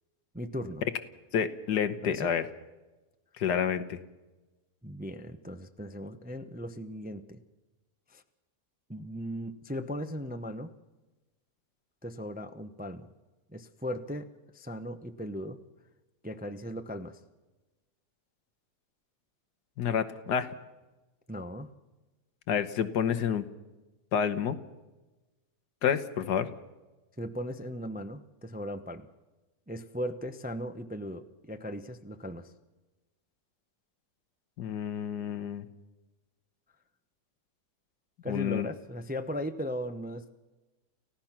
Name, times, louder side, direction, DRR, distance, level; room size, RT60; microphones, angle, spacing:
voice 1, 0.3-0.8 2.1-2.3 4.8-7.4 8.1-8.2 8.9-10.7 12.0-13.1 13.5-14.3 14.5-15.6 16.2-17.2 21.3-21.7 27.2-29.1 29.7-32.5 38.2-40.3, equal, 10° right, 8 dB, 0.5 m, -37 dB
voice 2, 1.3-2.5 3.4-4.0 19.8-20.5 22.5-23.4 24.1-24.6 25.8-26.5 34.6-35.7 38.3-38.7, left 8 dB, 85° left, 9 dB, 1.7 m, -29 dB
29.5 x 15.5 x 5.9 m, 1.1 s
omnidirectional pair, 1.7 m